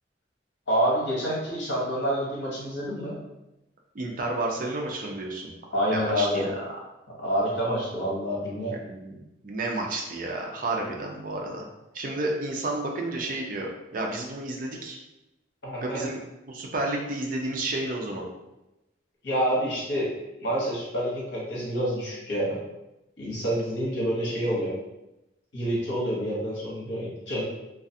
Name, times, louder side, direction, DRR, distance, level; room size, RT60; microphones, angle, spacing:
voice 1, 0.7-3.1 5.7-6.5 7.2-8.8 15.6-16.0 19.2-20.1 20.4-22.6 23.2-24.7 25.5-27.4, equal, 70° left, -5 dB, 1.0 m, -27 dB
voice 2, 3.9-5.5 5.9-6.6 8.8-11.7 11.9-15.0 15.8-16.2 16.5-18.3, right 2 dB, 45° right, 0 dB, 0.4 m, -31 dB
2.4 x 2.3 x 2.6 m, 0.94 s
head